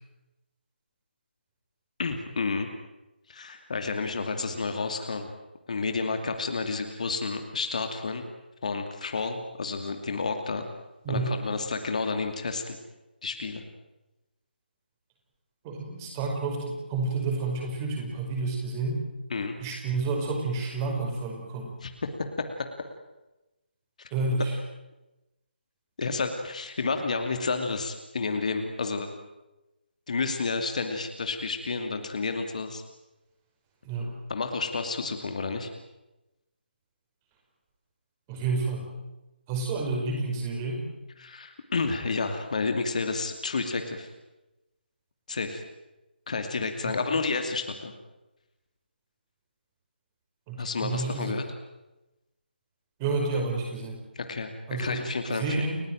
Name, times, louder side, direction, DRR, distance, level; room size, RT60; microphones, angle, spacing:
voice 1, 2.0-2.7 3.3-5.3 5.7-8.2 8.6-10.7 11.1-12.8 13.2-13.6 19.3-19.5 21.8-22.5 24.0-24.1 26.0-29.1 30.1-32.8 34.3-35.7 41.2-44.1 45.3-45.6 46.3-47.9 50.6-51.4 54.1-55.6, left 4 dB, 40° left, 6 dB, 2.6 m, -30 dB
voice 2, 15.6-19.0 19.6-21.7 24.1-24.5 33.8-34.1 38.3-38.9 39.5-40.8 46.8-46.9 50.5-51.3 53.0-54.0 54.7-55.8, right 3 dB, 15° right, 1 dB, 5.3 m, -30 dB
30.0 x 16.5 x 9.1 m, 1.0 s
figure-of-eight pair, 150°, 6 cm